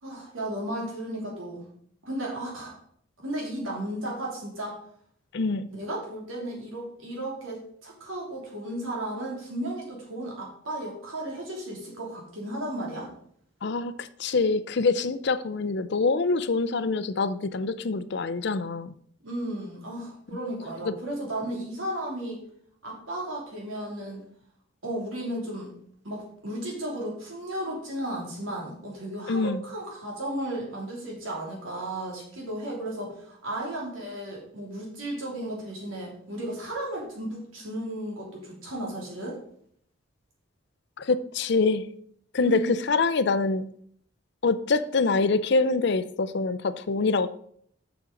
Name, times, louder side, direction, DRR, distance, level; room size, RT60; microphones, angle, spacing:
voice 1, 0.0-1.7 2.0-2.8 3.2-4.8 5.7-13.1 19.2-22.4 22.8-24.2 24.8-25.7 26.0-39.4 42.4-42.7, right 1 dB, 90° right, -2 dB, 3.2 m, -34 dB
voice 2, 5.3-5.7 13.6-18.9 20.8-20.9 29.3-29.6 41.0-41.9 42.3-43.7 44.4-47.3, left 3 dB, 60° left, 13 dB, 0.5 m, -25 dB
7.4 x 6.1 x 5.2 m, 0.64 s
head